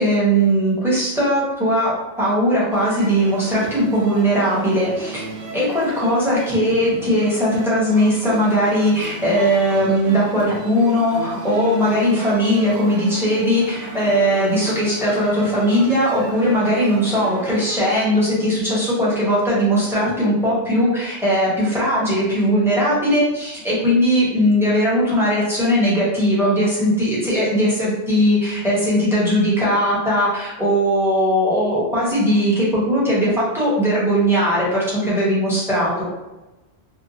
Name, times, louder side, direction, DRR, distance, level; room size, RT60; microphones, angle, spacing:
voice 1, 0.0-1.9 2.2-5.2 5.5-36.0, equal, ahead, -8 dB, 0.8 m, -19 dB
sound 1, 2.7-17.8, right 1 dB, 85° right, 0.9 m, -35 dB
2.8 x 2.2 x 2.7 m, 1.0 s
omnidirectional pair, 1.1 m